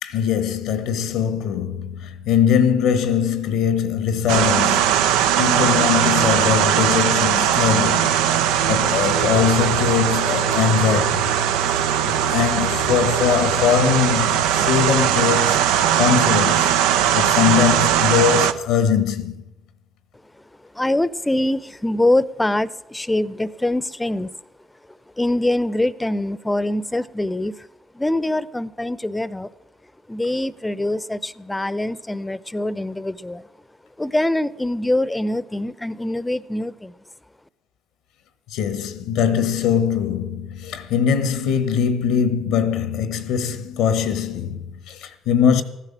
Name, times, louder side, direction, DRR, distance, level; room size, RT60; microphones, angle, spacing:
voice 1, 0.0-5.1 5.4-8.2 8.7-11.3 11.7-15.6 16.0-16.7 17.1-19.4 38.5-45.6, left 7 dB, 75° left, 1.0 m, -21 dB
sound 1, 4.3-18.5, right 10 dB, 80° right, 0.6 m, -19 dB
voice 2, 20.6-24.3 25.2-27.7 27.9-29.5 30.1-33.5 34.0-37.0, left 1 dB, 10° left, 0.7 m, -24 dB
14.5 x 9.9 x 7.3 m
hypercardioid pair, 55°, 0 cm